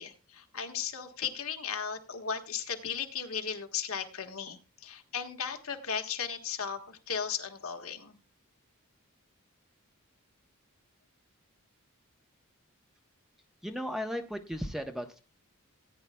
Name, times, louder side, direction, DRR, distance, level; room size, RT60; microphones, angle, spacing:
voice 1, 0.0-8.2, left 7 dB, 70° left, 4 dB, 1.5 m, -36 dB
voice 2, 13.6-15.2, equal, ahead, 6 dB, 0.8 m, -35 dB
18.0 x 9.7 x 2.2 m, 0.30 s
head